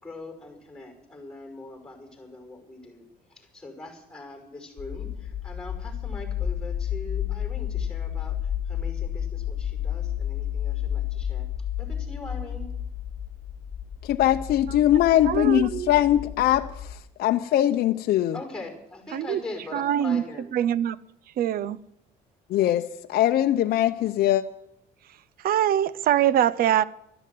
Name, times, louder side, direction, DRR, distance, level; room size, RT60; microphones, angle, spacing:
voice 1, 0.0-8.4 8.7-11.5 11.8-12.7 18.3-20.5, left 2 dB, 5° left, 4 dB, 5.5 m, -41 dB
sound 1, 4.8-16.9, left 10 dB, 45° left, 1.3 m, -31 dB
voice 2, 14.0-16.7 17.2-18.4 22.5-24.4, left 12 dB, 65° left, 6 dB, 0.7 m, -21 dB
voice 3, 15.1-15.9 19.1-19.4 19.7-20.2 20.5-21.0 21.4-21.8 25.4-26.8, right 11 dB, 60° right, 21 dB, 0.7 m, -23 dB
13.0 x 10.5 x 9.3 m, 0.78 s
cardioid pair, 110°, 17 cm